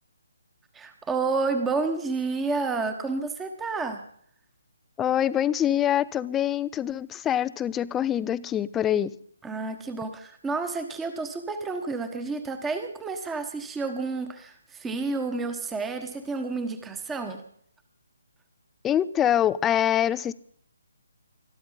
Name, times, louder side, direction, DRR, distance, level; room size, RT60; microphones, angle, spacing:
voice 1, 0.7-4.0 9.4-17.4, right 3 dB, 10° right, 8 dB, 1.3 m, -30 dB
voice 2, 5.0-9.1 18.8-20.3, left 10 dB, 10° left, 16 dB, 0.5 m, -24 dB
22.0 x 13.0 x 4.0 m, 0.63 s
figure-of-eight pair, 145°, 0 cm